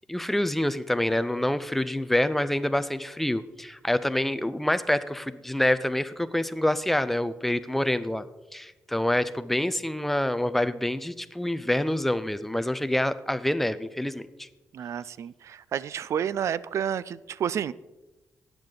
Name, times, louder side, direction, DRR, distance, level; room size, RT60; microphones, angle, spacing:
voice 1, 0.1-8.2 8.5-14.5, left 1 dB, 5° left, 13 dB, 0.5 m, -26 dB
voice 2, 14.7-17.7, right 8 dB, 55° right, 19 dB, 0.4 m, -30 dB
14.0 x 9.0 x 3.9 m, 1.1 s
cardioid pair, 150°, 6 cm